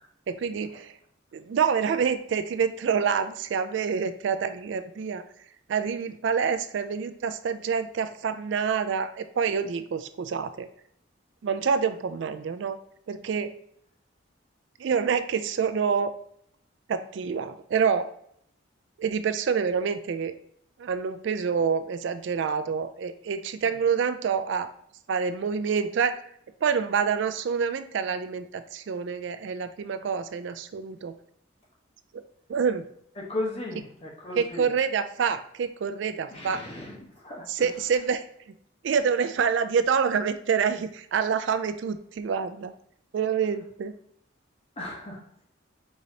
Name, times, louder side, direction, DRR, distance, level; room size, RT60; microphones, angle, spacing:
voice 1, 0.3-0.9 1.3-5.2 5.7-10.7 11.4-12.8 13.1-13.5 14.8-16.1 16.9-18.1 19.0-20.3 20.8-24.7 25.1-26.2 26.6-31.1 32.5-32.8 34.4-36.6 37.5-38.2 38.8-42.7 43.1-43.9, right 6 dB, 65° right, 11 dB, 0.3 m, -27 dB
voice 2, 33.2-34.7 36.3-37.7 44.8-45.2, left 2 dB, 30° left, -1 dB, 1.0 m, -36 dB
4.7 x 4.0 x 2.7 m, 0.69 s
head